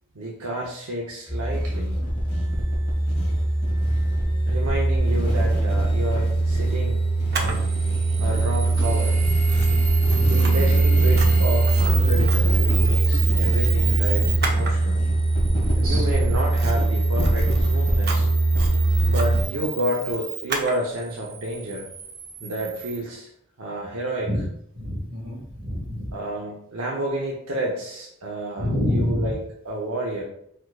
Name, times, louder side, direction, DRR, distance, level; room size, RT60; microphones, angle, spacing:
voice 1, 0.1-2.0 4.5-7.0 7.3-7.8 8.2-9.2 10.2-15.0 15.8-18.3 19.1-21.9 22.4-23.3 23.6-24.3 26.1-29.4 29.6-30.2, right 1 dB, 90° right, -3 dB, 0.8 m, -30 dB
sound 1, 1.3-19.4, right 2 dB, 30° left, 1.5 m, -21 dB
Camera, 7.3-23.0, right 6 dB, 50° right, 0.7 m, -33 dB
voice 2, 14.2-14.7 15.7-16.1 24.3-24.4 24.7-26.1 28.6-29.4, left 1 dB, 75° right, -2 dB, 1.7 m, -28 dB
4.6 x 4.5 x 2.3 m, 0.72 s
head